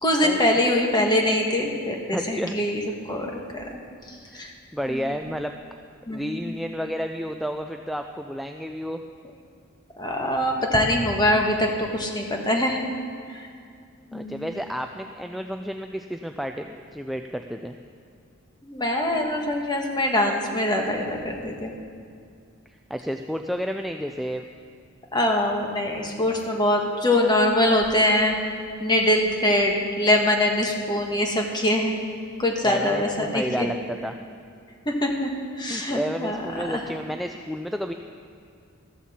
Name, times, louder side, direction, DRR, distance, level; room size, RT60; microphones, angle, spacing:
voice 1, 0.0-2.8 3.1-3.8 4.1-4.5 4.9-5.1 6.1-6.6 10.0-12.8 13.3-13.4 14.1-14.6 18.6-21.7 25.1-28.5 28.8-31.9 32.4-33.7 34.8-35.3 35.6-36.8, left 1 dB, 20° left, 1 dB, 1.4 m, -23 dB
voice 2, 2.1-2.6 4.3-5.6 6.1-9.0 14.1-17.8 22.7-24.5 32.6-34.2 35.7-37.9, equal, ahead, 5 dB, 0.3 m, -31 dB
14.5 x 14.0 x 4.3 m, 2.3 s
head